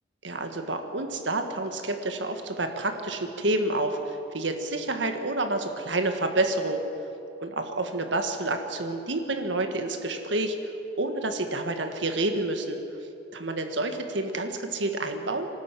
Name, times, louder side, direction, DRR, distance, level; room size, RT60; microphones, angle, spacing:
voice 1, 0.2-6.8 7.4-10.6 11.0-13.0 13.3-15.5, right 2 dB, 75° right, 6 dB, 1.7 m, -29 dB
24.0 x 13.0 x 9.1 m, 2.8 s
head